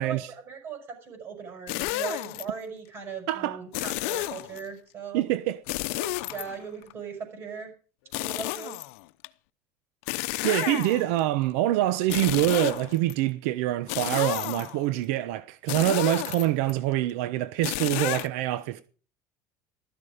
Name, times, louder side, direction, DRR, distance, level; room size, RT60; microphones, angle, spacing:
voice 1, 0.0-5.2 5.9-7.7 8.1-8.8 10.6-10.8, right 6 dB, 30° right, 6.0 m, -39 dB
sound 1, 1.7-2.4 3.7-4.6 5.7-6.9 8.1-9.3 10.1-11.2 12.0-13.1 13.9-14.9 15.7-16.7 17.6-18.3, left 20 dB, 85° left, 0.8 m, -31 dB
voice 2, 3.3-3.6 5.1-5.6 10.4-18.8, right 15 dB, 90° right, 0.9 m, -25 dB
15.5 x 13.5 x 5.1 m
cardioid pair, 180°, 7 cm